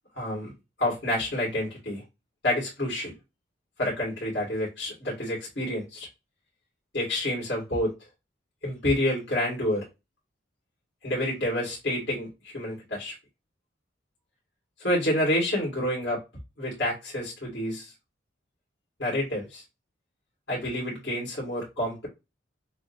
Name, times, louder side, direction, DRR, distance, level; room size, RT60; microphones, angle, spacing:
voice 1, 0.2-0.5 0.8-2.0 2.4-3.1 3.8-6.1 6.9-7.9 8.6-9.8 11.0-13.1 14.8-16.2 16.6-17.9 19.0-19.6 20.5-22.1, left 1 dB, 65° left, 2.3 m, -28 dB
6.6 x 2.3 x 2.6 m
head